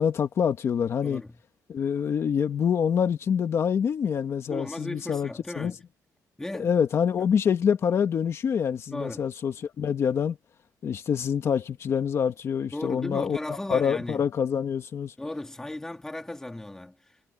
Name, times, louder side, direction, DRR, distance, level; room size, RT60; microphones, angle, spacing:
voice 1, 0.0-1.2 1.7-5.3 5.6-5.7 6.6-10.4 10.8-13.4 13.7-15.1, left 7 dB, 45° left, 1.9 m, -26 dB
voice 2, 1.0-1.4 4.5-5.8 6.4-6.7 8.9-9.3 12.7-14.3 15.2-17.2, left 1 dB, 10° left, 2.0 m, -36 dB
cardioid pair, 165°, 6 cm